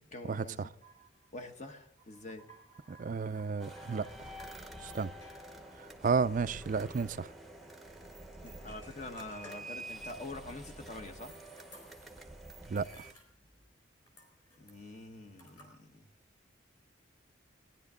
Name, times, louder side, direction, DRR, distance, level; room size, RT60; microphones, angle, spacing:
voice 1, 0.1-0.7 1.3-2.5 8.4-11.3 14.6-16.1, left 2 dB, 35° left, 1.2 m, -46 dB
sound 1, 0.8-6.8 7.1-7.2 7.4-7.6 8.3-10.0 10.5-12.4 12.6-13.8 14.1-15.7, equal, 20° left, 4.2 m, -59 dB
voice 2, 2.9-4.0 4.9-5.1 6.0-7.3 12.7-12.9, right 5 dB, 40° right, 0.4 m, -31 dB
sound 2, 3.6-13.1, right 1 dB, ahead, 0.9 m, -48 dB
18.5 x 10.5 x 3.7 m
head